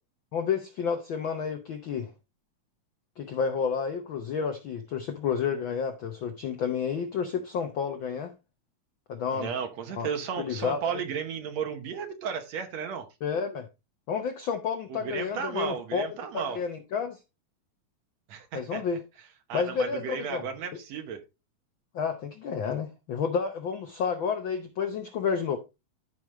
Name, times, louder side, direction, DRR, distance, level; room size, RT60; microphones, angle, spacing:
voice 1, 0.3-2.1 3.2-8.3 9.1-9.5 9.9-10.1 10.4-10.8 13.2-13.7 14.1-16.1 16.3-17.2 18.5-19.0 19.5-20.4 21.9-25.6, left 6 dB, 75° left, 1.1 m, -30 dB
voice 2, 9.3-13.1 14.9-16.6 18.3-18.8 19.5-21.2, right 7 dB, 70° right, 2.1 m, -34 dB
14.0 x 5.1 x 3.0 m
omnidirectional pair, 3.4 m